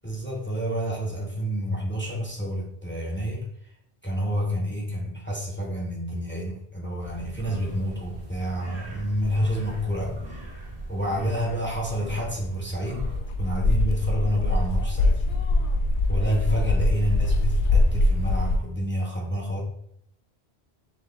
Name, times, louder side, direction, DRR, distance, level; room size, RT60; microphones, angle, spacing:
voice 1, 0.0-3.5 4.0-10.2 10.9-13.1 13.4-15.2 16.1-19.6, equal, 15° left, -1 dB, 0.5 m, -29 dB
sound 1, 7.0-13.2, right 1 dB, 80° right, 1.3 m, -39 dB
sound 2, 13.0-18.6, left 2 dB, 60° left, 0.6 m, -23 dB
5.9 x 2.1 x 3.3 m, 0.70 s
omnidirectional pair, 1.1 m